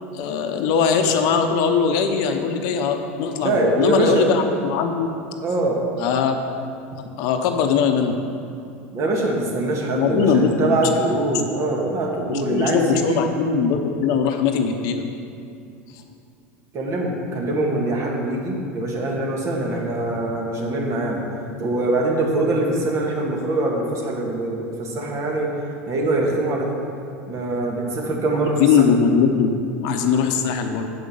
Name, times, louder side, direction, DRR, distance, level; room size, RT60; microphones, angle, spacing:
voice 1, 0.1-5.1 6.0-6.4 7.2-8.2 9.9-10.8 12.3-15.0 28.6-30.9, left 6 dB, 60° left, 6 dB, 0.8 m, -20 dB
voice 2, 3.4-4.3 5.4-5.8 8.9-13.2 16.7-21.2 21.6-25.5 25.9-26.8 27.3-28.9, right 2 dB, 45° right, -1 dB, 1.9 m, -23 dB
7.8 x 5.3 x 6.7 m, 2.6 s
hypercardioid pair, 90°, 7 cm